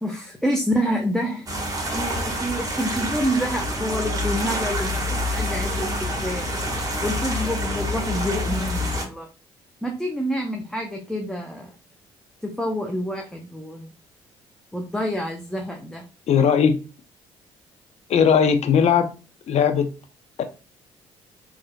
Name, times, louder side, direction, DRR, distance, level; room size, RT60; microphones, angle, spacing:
voice 1, 0.0-1.5 1.8-5.9 6.2-6.5 7.0-9.3 9.8-11.7 12.4-13.9 14.7-16.1, equal, 5° left, 2 dB, 0.6 m, -27 dB
sound 1, 1.5-9.0, left 1 dB, 25° right, 1.2 m, -27 dB
voice 2, 16.3-16.8 18.1-19.1 19.5-19.9 20.4-20.5, left 7 dB, 50° left, 8 dB, 0.5 m, -18 dB
3.3 x 2.4 x 2.2 m, 0.34 s
hypercardioid pair, 50°, 14 cm